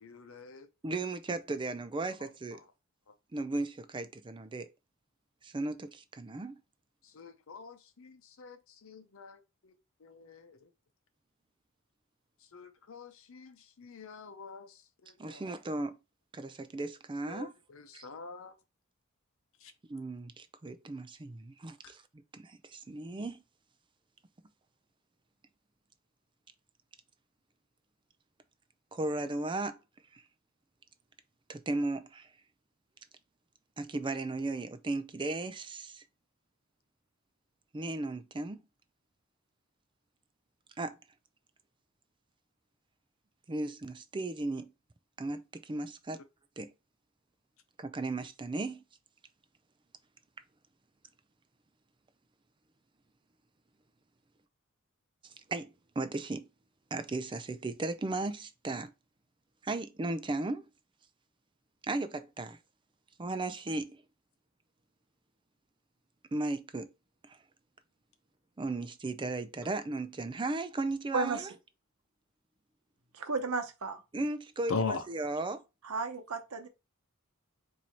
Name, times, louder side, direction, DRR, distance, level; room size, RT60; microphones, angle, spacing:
voice 1, 0.0-0.7 7.1-8.6 8.8-9.4 9.6-9.7 10.0-10.6 12.5-14.7 15.0-15.4 17.3-18.5 74.7-75.0, left 4 dB, 65° left, 0.7 m, -41 dB
voice 2, 0.8-2.6 3.3-4.7 5.4-6.6 15.2-16.0 16.3-17.5 17.9-18.1 19.9-22.0 22.3-23.4 28.9-29.8 30.1-30.2 31.5-32.3 33.8-36.0 37.7-38.6 40.8-41.0 43.5-44.7 45.2-46.2 46.6-46.7 47.8-48.8 55.5-56.5 56.9-58.9 59.6-60.7 61.9-62.6 63.2-64.0 66.3-66.9 67.2-67.4 68.6-71.5 74.1-75.6, right 2 dB, 20° right, 0.4 m, -36 dB
voice 3, 71.1-71.5 73.1-74.0 75.8-76.7, right 4 dB, 80° right, 0.9 m, -33 dB
4.6 x 2.7 x 4.3 m
head